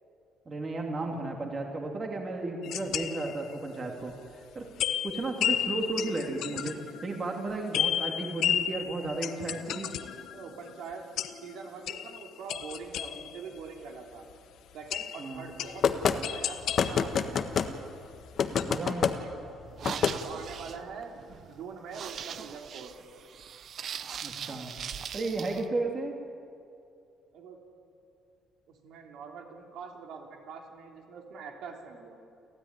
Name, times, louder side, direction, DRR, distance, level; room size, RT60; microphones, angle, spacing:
voice 1, 0.5-4.7 5.0-9.9 15.2-15.5 18.6-19.2 24.2-24.7 25.1-26.1, right 2 dB, 30° right, 1 dB, 3.0 m, -34 dB
sound 1, 2.6-3.7 4.1-4.2 4.8-13.6 14.3-14.4 14.9-17.9 18.2-18.6, left 10 dB, 70° left, 1.2 m, -33 dB
voice 2, 10.3-11.1 11.4-14.2 14.7-17.6 19.2-19.3 19.8-22.9 25.5-25.7 27.3-27.6 28.7-32.2, right 5 dB, 70° right, 1 dB, 3.4 m, -44 dB
sound 2, 15.8-16.2 16.8-17.7 18.4-19.1 19.8-20.2, left 7 dB, 50° left, 1.4 m, -26 dB
sound 3, 19.7-25.7, right 8 dB, 50° right, 0.9 m, -40 dB
29.5 x 13.0 x 9.9 m, 2.5 s
cardioid pair, 125°, 0 cm